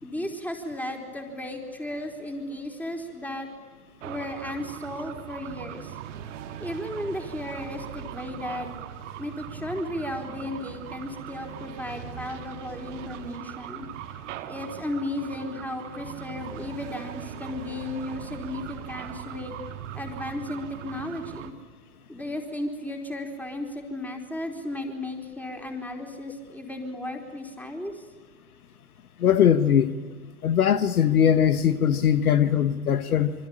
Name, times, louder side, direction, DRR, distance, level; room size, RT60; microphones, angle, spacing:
voice 1, 0.0-3.5 4.0-6.0 6.6-8.7 9.2-13.9 14.5-19.6 19.9-21.5 22.1-28.0, left 1 dB, 5° left, 3 dB, 4.2 m, -35 dB
sound 1, 4.0-21.5, right 10 dB, 50° right, 2.0 m, -40 dB
voice 2, 29.2-29.9 30.4-33.3, left 9 dB, 70° left, 12 dB, 1.5 m, -20 dB
26.5 x 25.0 x 9.0 m, 1.5 s
figure-of-eight pair, 110°, 46 cm